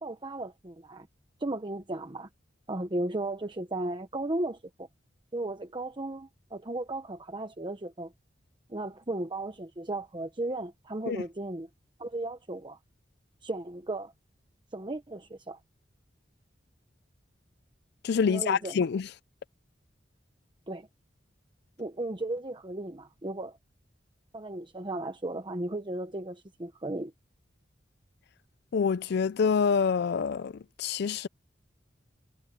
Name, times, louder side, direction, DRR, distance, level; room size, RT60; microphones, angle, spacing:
voice 1, 0.0-1.1 1.4-2.3 2.7-4.9 5.3-8.1 8.7-11.7 12.0-12.8 13.4-14.1 14.7-15.6 18.2-18.8 20.7-20.9 21.8-23.6 24.3-27.1, right 2 dB, 25° right, 1.0 m, -35 dB
voice 2, 18.0-19.1 28.7-31.3, left 6 dB, 60° left, 0.4 m, -26 dB
head